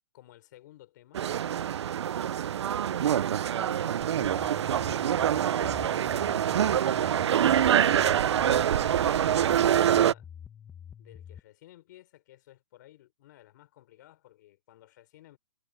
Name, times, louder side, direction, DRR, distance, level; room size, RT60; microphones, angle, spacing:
voice 1, 0.1-1.2 2.6-7.5 8.9-10.3 11.0-15.4, left 14 dB, 35° left, 4.2 m, -55 dB
sound 1, 1.1-10.1, right 10 dB, 60° right, 0.5 m, -25 dB
sound 2, 4.0-11.4, left 8 dB, 5° left, 1.1 m, -47 dB
hypercardioid pair, 170°, 16 cm